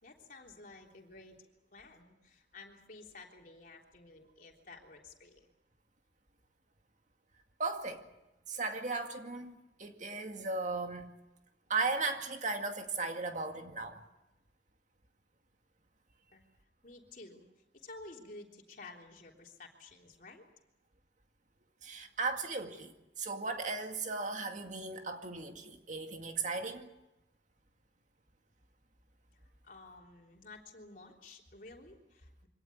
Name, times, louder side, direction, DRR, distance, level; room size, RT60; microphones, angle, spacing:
voice 1, 0.0-5.5 16.3-16.4 16.8-17.5 17.7-20.4 29.6-32.5, left 3 dB, 50° left, 3.5 m, -52 dB
voice 2, 7.6-8.0 8.5-9.5 9.8-11.1 11.7-14.0 21.8-26.9, right 3 dB, 45° right, 2.1 m, -36 dB
24.5 x 18.0 x 9.4 m
head